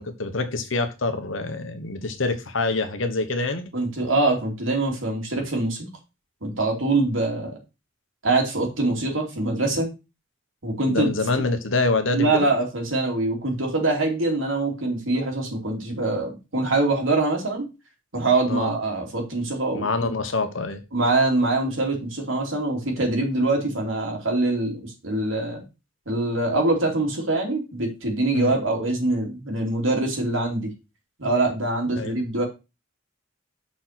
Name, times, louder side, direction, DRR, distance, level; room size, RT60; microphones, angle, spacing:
voice 1, 0.0-3.6 10.9-12.5 18.5-18.7 19.7-20.8 28.3-28.5 31.9-32.2, left 3 dB, 80° left, 1.2 m, -26 dB
voice 2, 3.7-5.9 6.4-7.6 8.2-9.9 10.6-11.1 12.1-17.7 18.1-20.1 20.9-25.6 26.1-30.7 31.2-32.4, right 2 dB, 90° right, 3.0 m, -24 dB
6.3 x 4.4 x 5.9 m
head